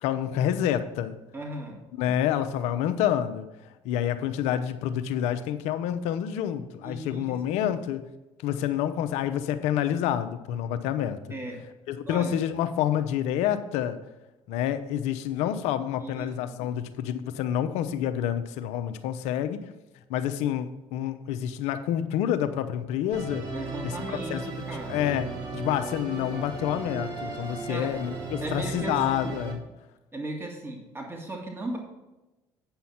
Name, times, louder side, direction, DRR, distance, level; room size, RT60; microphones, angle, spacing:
voice 1, 0.0-1.2 2.0-3.5 3.8-8.1 8.4-11.4 11.9-14.0 14.5-19.7 20.1-23.5 23.8-29.6, left 10 dB, 80° left, 0.7 m, -28 dB
voice 2, 1.3-1.9 6.8-7.6 11.3-11.6 12.1-12.3 16.0-16.8 23.5-25.0 27.7-27.9 28.4-29.3 30.1-31.8, right 1 dB, 20° right, 2.1 m, -37 dB
Musical instrument, 23.1-29.5, right 3 dB, 45° right, 2.4 m, -36 dB
8.7 x 5.8 x 5.7 m
supercardioid pair, 70°, 11 cm